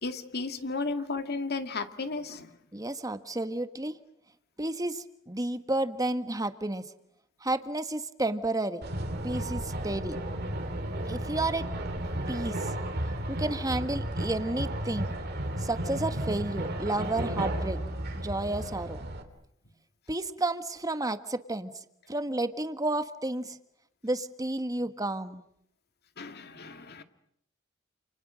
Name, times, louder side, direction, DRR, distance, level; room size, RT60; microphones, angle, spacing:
voice 1, 0.0-2.5 26.2-27.0, left 3 dB, 50° left, 8 dB, 2.3 m, -34 dB
voice 2, 2.7-4.0 4.6-6.8 7.4-8.8 9.2-10.2 11.1-11.6 12.3-12.6 13.3-15.1 15.6-17.8 18.1-19.0 20.1-21.7 22.1-23.6 24.0-25.4, right 2 dB, 20° right, 10 dB, 1.5 m, -31 dB
sound 1, 8.8-19.2, right 1 dB, 55° right, 3.3 m, -33 dB
29.5 x 29.0 x 6.4 m, 0.75 s
head